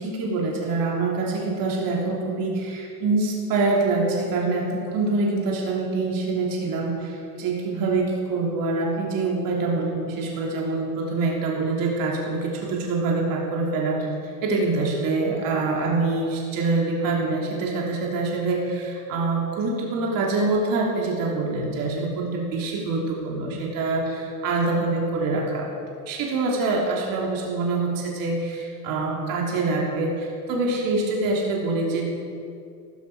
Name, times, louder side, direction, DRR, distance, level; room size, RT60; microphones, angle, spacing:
voice 1, 0.0-25.8 26.1-32.1, right 3 dB, 45° right, -2 dB, 3.1 m, -25 dB
14.0 x 13.5 x 4.9 m, 2.4 s
hypercardioid pair, 105°, 47 cm